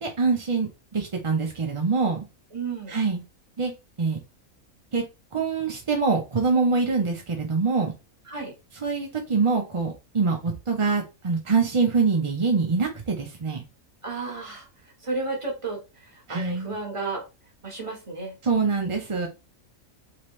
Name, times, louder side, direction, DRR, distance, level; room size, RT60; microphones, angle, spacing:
voice 1, 0.0-2.2 2.9-3.2 3.6-3.7 4.0-4.2 4.9-5.0 5.3-7.9 8.7-13.6 16.3-16.8 18.4-19.3, right 4 dB, 45° right, 2 dB, 0.4 m, -24 dB
voice 2, 2.5-3.0 8.3-8.5 14.0-14.7 15.0-15.8 16.1-17.2 17.6-18.3, right 3 dB, 25° right, 0 dB, 1.2 m, -32 dB
3.5 x 3.0 x 3.1 m, 0.27 s
omnidirectional pair, 1.5 m